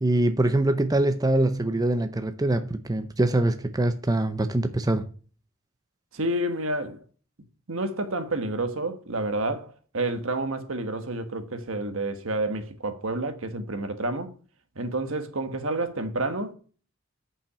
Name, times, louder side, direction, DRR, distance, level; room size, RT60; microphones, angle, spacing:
voice 1, 0.0-5.1, right 1 dB, 15° right, 0.5 m, -24 dB
voice 2, 6.1-7.0 7.7-14.3 14.7-16.5, right 2 dB, 65° right, 1.3 m, -29 dB
8.6 x 5.5 x 6.6 m
head